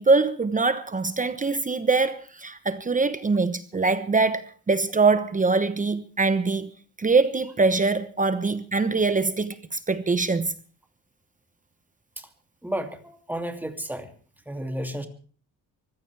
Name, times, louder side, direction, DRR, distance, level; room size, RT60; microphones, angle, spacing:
voice 1, 0.0-6.7 7.0-10.5, right 3 dB, 20° right, 1.0 m, -23 dB
voice 2, 12.6-14.1 14.5-15.1, right 1 dB, 5° right, 2.6 m, -32 dB
24.5 x 15.5 x 3.4 m
cardioid pair, 120°, 37 cm